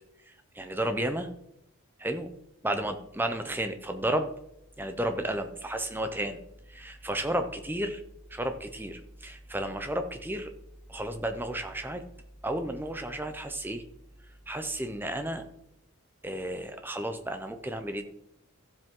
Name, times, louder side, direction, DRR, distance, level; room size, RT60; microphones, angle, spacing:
voice 1, 0.5-1.3 2.0-2.3 2.6-4.3 4.8-6.4 6.7-8.0 8.3-10.5 10.9-12.0 12.4-13.8 14.5-15.4 16.2-18.0, right 1 dB, 10° right, 7 dB, 0.7 m, -32 dB
14.0 x 7.7 x 3.8 m, 0.81 s
head